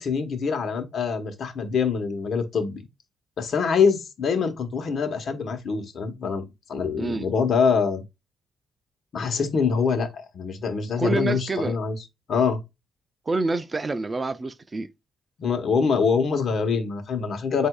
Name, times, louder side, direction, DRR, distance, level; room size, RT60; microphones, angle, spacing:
voice 1, 0.0-2.8 3.4-6.4 6.7-8.0 9.1-11.9 12.3-12.6 15.4-17.7, left 5 dB, 55° left, 1.1 m, -24 dB
voice 2, 7.0-7.3 11.0-11.8 13.3-14.9, right 3 dB, 25° right, 0.5 m, -27 dB
7.9 x 2.7 x 2.3 m
cardioid pair, 90°, 0 cm